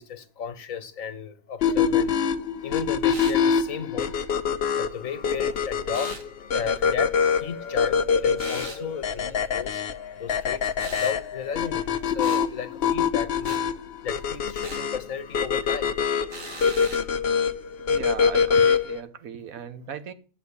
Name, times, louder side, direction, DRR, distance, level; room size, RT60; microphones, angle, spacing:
voice 1, 0.0-2.1 2.6-4.1 4.8-6.1 6.4-9.8 10.2-13.6 14.0-15.9, left 7 dB, 75° left, 11 dB, 1.5 m, -34 dB
sound 1, 1.6-19.0, left 6 dB, 55° left, 0.9 m, -24 dB
sound 2, 3.1-3.4 5.9-6.2 8.4-8.8 10.8-11.2 12.2-12.5 13.4-13.6 14.6-14.9 16.3-17.1, right 3 dB, 75° right, 2.2 m, -39 dB
voice 2, 17.9-20.1, right 7 dB, 90° right, 11 dB, 1.5 m, -36 dB
8.0 x 7.9 x 8.4 m, 0.39 s
omnidirectional pair, 1.4 m